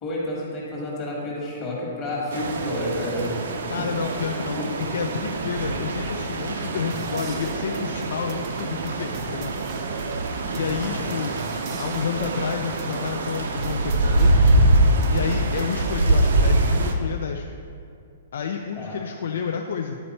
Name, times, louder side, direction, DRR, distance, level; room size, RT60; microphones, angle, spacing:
voice 1, 0.0-3.9 4.3-4.7 10.6-11.1 18.7-19.0, left 1 dB, 20° left, -5 dB, 1.3 m, -31 dB
sound 1, 2.3-16.9, right 2 dB, 70° right, 0.7 m, -24 dB
voice 2, 3.7-9.5 10.5-11.4 11.8-14.5 15.1-17.5 18.3-20.0, left 6 dB, 65° left, 4 dB, 0.4 m, -30 dB
sound 2, 6.9-15.9, right 5 dB, 25° right, 0.4 m, -43 dB
10.0 x 4.4 x 4.1 m, 2.4 s
hypercardioid pair, 175°, 0 cm